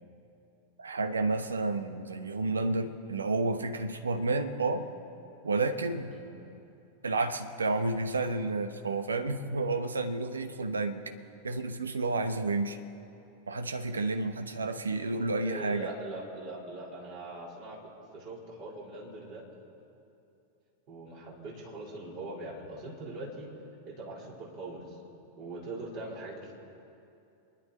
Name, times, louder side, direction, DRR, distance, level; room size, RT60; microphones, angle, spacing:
voice 1, 0.8-4.9 5.4-6.1 7.0-11.1 11.4-12.8 13.5-15.9, right 3 dB, 75° right, 9 dB, 0.9 m, -30 dB
voice 2, 15.4-19.4 20.9-23.5 23.9-25.0 25.4-26.5, right 2 dB, 40° right, -3 dB, 3.6 m, -41 dB
27.5 x 11.0 x 4.2 m, 2.7 s
figure-of-eight pair, 90°, 0 cm